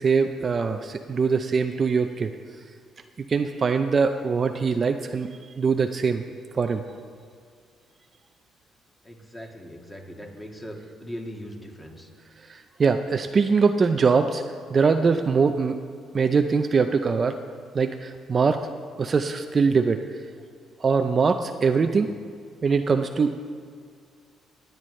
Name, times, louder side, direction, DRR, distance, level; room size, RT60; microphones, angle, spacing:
voice 1, 0.0-2.3 3.2-6.2 6.5-6.8 12.5-14.4 14.7-15.8 16.1-17.4 17.7-18.7 19.0-20.0 20.8-22.1 22.6-23.4, right 5 dB, 35° right, 7 dB, 0.5 m, -22 dB
voice 2, 9.0-12.1, equal, 10° left, 1 dB, 1.7 m, -39 dB
18.5 x 9.2 x 3.2 m, 2.1 s
cardioid pair, 100°, 0 cm